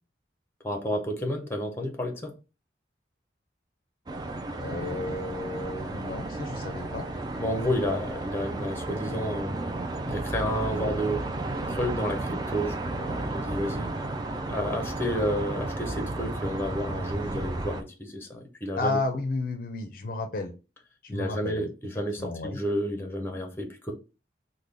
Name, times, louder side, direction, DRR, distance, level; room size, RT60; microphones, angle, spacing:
voice 1, 0.6-2.3 7.4-9.8 10.0-11.3 11.7-13.9 14.4-19.0 21.1-23.9, equal, 10° left, 0.7 m, -31 dB
sound 1, 4.1-17.8, right 2 dB, 20° right, 0.4 m, -33 dB
voice 2, 4.6-7.1 18.8-20.5 21.1-21.7 22.2-22.6, left 2 dB, 50° left, 0.4 m, -32 dB
3.6 x 2.2 x 3.2 m
head